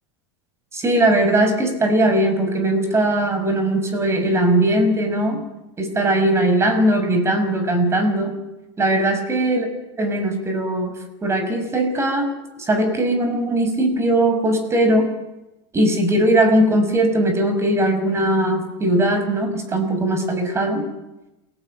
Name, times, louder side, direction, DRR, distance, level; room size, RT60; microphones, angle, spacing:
voice 1, 0.7-5.4 5.8-8.3 8.8-9.7 10.0-12.3 12.6-15.1 15.7-20.8, right 1 dB, 15° right, 7 dB, 6.1 m, -19 dB
28.5 x 18.0 x 9.2 m, 0.97 s
supercardioid pair, 135°, 15 cm